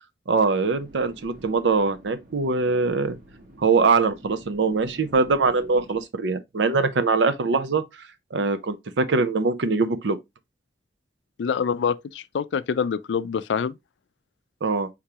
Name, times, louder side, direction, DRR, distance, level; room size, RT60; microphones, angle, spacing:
voice 1, 0.3-3.2 3.6-7.8 8.3-10.2 14.6-14.9, right 4 dB, 85° right, 0.6 m, -22 dB
sound 1, 0.7-6.0, right 1 dB, 50° right, 1.2 m, -48 dB
voice 2, 11.4-13.8, left 6 dB, 80° left, 0.4 m, -26 dB
4.7 x 3.6 x 2.8 m
head